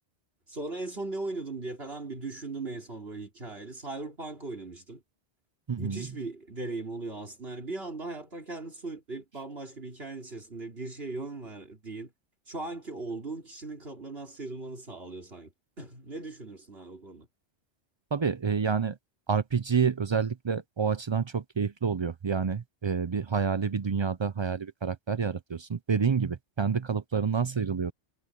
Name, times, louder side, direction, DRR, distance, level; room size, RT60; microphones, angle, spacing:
voice 1, 0.5-5.0 5.8-12.1 12.5-15.5 15.8-17.3, right 3 dB, 60° right, 3.9 m, -38 dB
voice 2, 5.7-6.1 18.1-19.0 19.3-27.9, right 6 dB, 40° right, 0.4 m, -28 dB
omnidirectional pair, 1.2 m